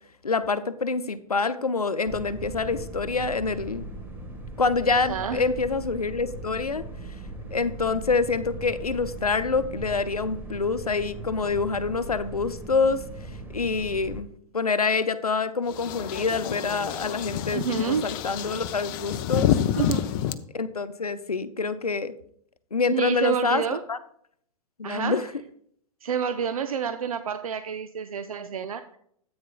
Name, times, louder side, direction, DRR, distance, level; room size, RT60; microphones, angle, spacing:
voice 1, 0.2-3.9 4.6-6.8 7.5-13.0 13.5-14.3 14.5-19.5 20.5-22.1 22.7-23.6 23.9-24.0 24.8-25.2, left 4 dB, 85° left, 12 dB, 0.7 m, -26 dB
sound 1, 2.1-14.2, right 2 dB, 10° right, 1.3 m, -39 dB
voice 2, 5.1-5.4 17.5-18.1 19.8-20.2 22.9-23.8 24.8-25.3 26.0-28.8, right 7 dB, 70° right, 9 dB, 0.6 m, -29 dB
sound 2, 15.7-20.3, left 10 dB, 35° left, 0.6 m, -28 dB
13.5 x 8.7 x 2.3 m, 0.65 s
figure-of-eight pair, 110°, 19 cm